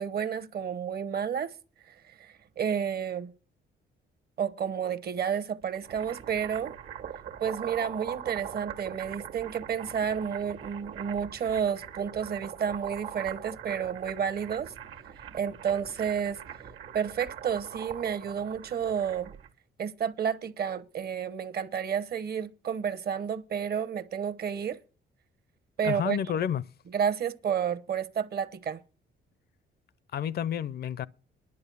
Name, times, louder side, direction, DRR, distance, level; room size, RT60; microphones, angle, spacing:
voice 1, 0.0-1.5 1.9-3.3 4.4-6.7 7.4-14.7 15.3-16.4 16.9-19.3 19.8-24.8 25.8-26.2 26.9-28.8, right 8 dB, 50° right, 0.9 m, -31 dB
sound 1, 5.6-19.5, right 9 dB, 80° right, 1.6 m, -42 dB
voice 2, 25.8-26.6 30.1-31.1, left 9 dB, 55° left, 0.5 m, -30 dB
11.0 x 7.9 x 6.9 m
cardioid pair, 90°, 20 cm